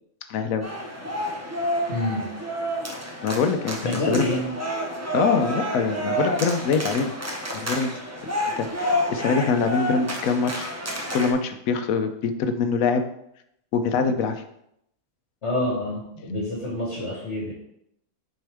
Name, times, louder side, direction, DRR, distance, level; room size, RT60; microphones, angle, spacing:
voice 1, 0.3-0.7 3.2-4.3 5.1-7.1 7.5-7.9 8.6-10.7 11.1-13.0 13.7-14.4, left 5 dB, 75° left, 8 dB, 1.0 m, -24 dB
sound 1, 0.6-11.3, equal, 20° right, 0.4 m, -29 dB
voice 2, 1.9-2.3 3.8-4.5 15.4-17.5, left 1 dB, 55° left, -3 dB, 1.4 m, -27 dB
6.3 x 4.5 x 3.4 m, 0.76 s
omnidirectional pair, 1.5 m